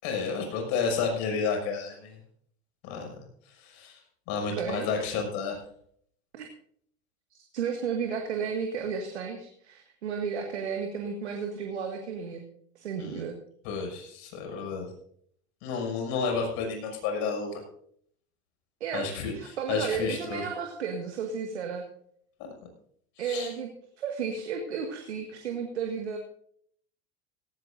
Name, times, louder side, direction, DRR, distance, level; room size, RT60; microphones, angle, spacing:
voice 1, 0.0-2.2 2.8-3.1 3.5-4.0 4.3-5.6 13.0-13.2 13.6-14.9 15.6-17.6 18.9-20.4 23.2-23.5, left 5 dB, 60° left, 3 dB, 6.6 m, -31 dB
voice 2, 4.5-4.9 6.3-6.5 7.5-12.4 12.8-13.4 18.8-19.1 19.3-21.8 23.2-23.7 24.0-26.2, right 6 dB, 90° right, 3 dB, 1.9 m, -33 dB
17.5 x 17.0 x 2.6 m, 0.63 s
hypercardioid pair, 85°, 33 cm